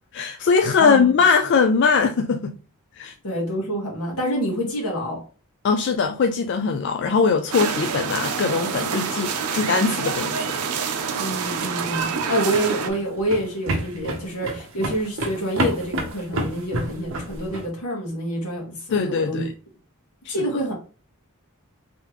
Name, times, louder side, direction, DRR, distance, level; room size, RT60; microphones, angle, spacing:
voice 1, 0.1-2.5 2.9-3.1 5.6-10.5 18.9-19.5 20.3-20.4, left 5 dB, 50° left, 0.3 m, -21 dB
voice 2, 0.8-1.1 3.2-5.2 11.1-19.5 20.3-20.7, equal, 80° left, 1.6 m, -27 dB
sound 1, 7.5-12.9, right 6 dB, 90° right, 0.6 m, -27 dB
sound 2, 12.1-17.7, right 1 dB, 60° right, 0.8 m, -29 dB
3.7 x 3.4 x 3.0 m
head